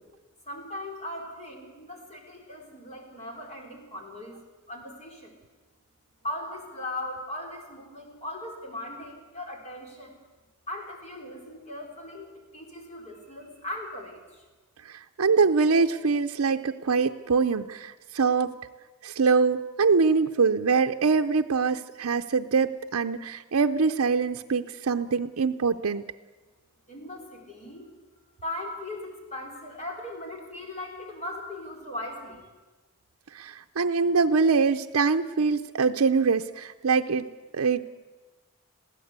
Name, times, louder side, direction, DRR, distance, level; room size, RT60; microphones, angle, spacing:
voice 1, 0.5-4.4 4.7-5.4 6.2-10.2 10.7-14.5 26.8-27.9 28.4-32.5, left 1 dB, 30° left, 1 dB, 4.1 m, -38 dB
voice 2, 14.8-18.5 19.0-26.0 33.3-37.3 37.5-37.8, right 5 dB, 70° right, 4 dB, 0.6 m, -24 dB
22.0 x 15.5 x 8.1 m, 1.2 s
head